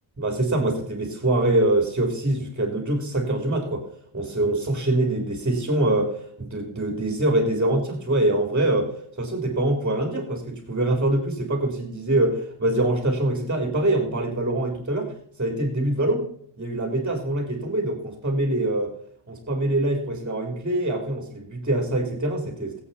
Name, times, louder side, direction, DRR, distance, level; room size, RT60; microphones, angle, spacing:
voice 1, 0.2-3.8 4.1-15.1 15.4-16.2 16.6-18.9 19.3-22.8, right 1 dB, 25° right, 2 dB, 3.5 m, -24 dB
20.5 x 8.5 x 4.2 m, 0.65 s
wide cardioid pair, 125°, 50 cm